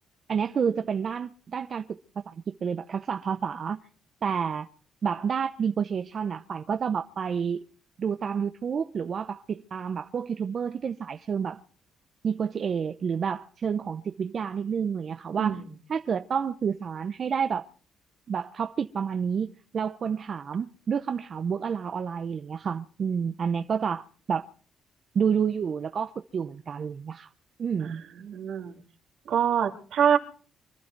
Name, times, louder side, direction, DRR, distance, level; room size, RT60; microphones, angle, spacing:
voice 1, 0.3-2.0 2.3-2.4 2.6-3.8 4.2-4.7 5.0-7.6 8.0-11.6 12.2-15.6 15.9-17.7 18.3-24.4 25.1-27.3 27.6-28.0, right 7 dB, 50° right, 0.7 m, -29 dB
voice 2, 15.4-15.8 27.8-28.8 29.3-30.2, right 8 dB, 75° right, 2.4 m, -26 dB
25.0 x 12.0 x 4.6 m
cardioid pair, 90°, 0 cm